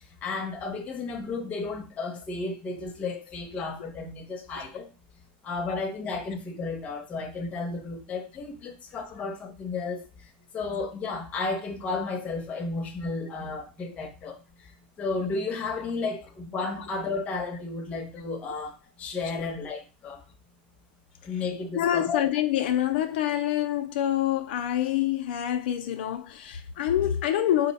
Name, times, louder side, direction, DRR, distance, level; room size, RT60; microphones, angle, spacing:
voice 1, 0.2-4.9 5.4-10.0 10.5-14.7 15.0-20.2 21.2-22.2, left 3 dB, 25° left, 0.8 m, -33 dB
voice 2, 21.7-27.7, left 11 dB, 80° left, 0.4 m, -26 dB
4.1 x 2.1 x 4.0 m
supercardioid pair, 150°, 5 cm